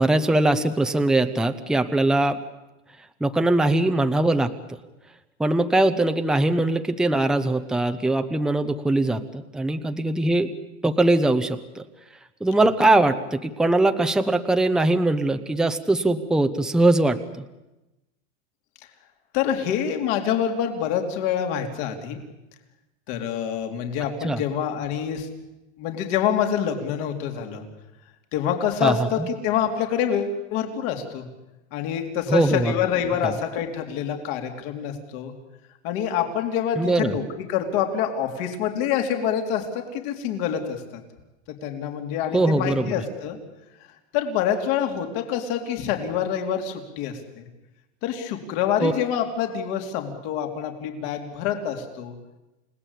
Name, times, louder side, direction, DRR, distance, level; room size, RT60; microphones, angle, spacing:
voice 1, 0.0-2.4 3.2-4.5 5.4-10.5 10.8-11.8 12.4-17.4 24.2-24.4 28.8-29.3 32.3-32.7 33.2-33.3 36.8-37.2 42.3-42.9 48.8-48.9, right 2 dB, ahead, 8 dB, 0.9 m, -21 dB
voice 2, 19.3-22.2 23.1-25.3 25.8-27.6 28.3-31.3 31.7-35.3 35.8-41.0 41.6-43.4 44.1-47.5 48.0-52.1, left 8 dB, 55° left, 4 dB, 3.8 m, -26 dB
30.0 x 18.0 x 8.5 m, 1.0 s
supercardioid pair, 140°, 35 cm